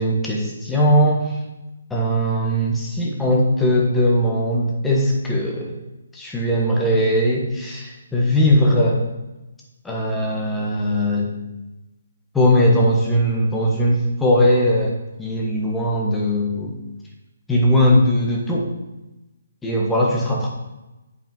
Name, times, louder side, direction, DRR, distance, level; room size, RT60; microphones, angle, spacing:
voice 1, 0.0-1.4 1.9-5.8 6.1-9.1 9.8-11.3 12.3-16.7 17.5-18.7 19.6-20.5, equal, 5° left, -2 dB, 1.3 m, -19 dB
8.7 x 5.4 x 3.9 m, 1.0 s
figure-of-eight pair, 140°, 0 cm